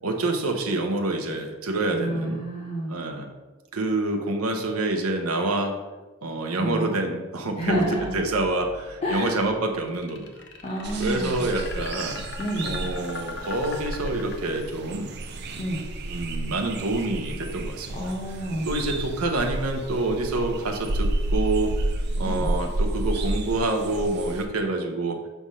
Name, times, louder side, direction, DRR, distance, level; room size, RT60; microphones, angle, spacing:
voice 1, 0.0-2.4 2.9-3.3 3.7-5.8 6.2-7.8 8.1-10.3 11.0-12.2 12.6-15.2 16.1-18.1 18.6-21.8 22.2-25.2, right 2 dB, 85° right, 3 dB, 0.9 m, -27 dB
voice 2, 1.9-2.9 6.6-6.9 7.6-8.1 9.0-9.4 10.6-11.4 12.4-12.8 15.6-15.8 17.9-18.7 22.2-22.5, equal, 30° left, -3 dB, 0.9 m, -29 dB
sound 1, 7.6-11.0, right 1 dB, 20° right, 0.8 m, -46 dB
sound 2, 9.9-14.9, left 4 dB, 50° left, 0.7 m, -39 dB
sound 3, 10.8-24.4, right 1 dB, 50° right, 0.5 m, -31 dB
6.2 x 3.5 x 5.5 m, 1.2 s
head